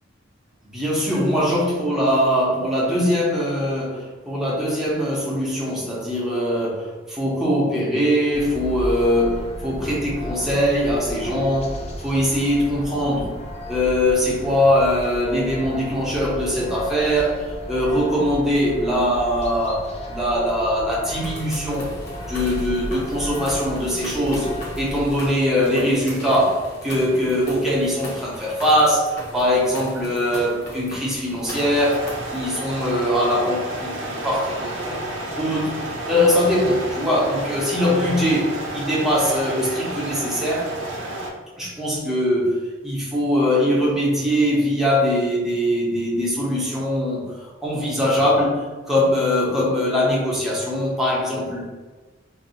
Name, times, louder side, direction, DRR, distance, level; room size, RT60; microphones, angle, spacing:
voice 1, 0.6-11.8 12.0-13.3 13.7-21.9 22.3-35.0 35.3-35.8 36.1-40.7 41.5-51.7, equal, ahead, -6 dB, 0.8 m, -22 dB
sound 1, 8.3-25.2, left 1 dB, 35° left, 0.5 m, -34 dB
sound 2, 21.2-32.5, left 1 dB, 60° left, 0.9 m, -38 dB
sound 3, 31.5-41.3, right 1 dB, 90° right, 0.7 m, -31 dB
2.7 x 2.3 x 4.1 m, 1.3 s
head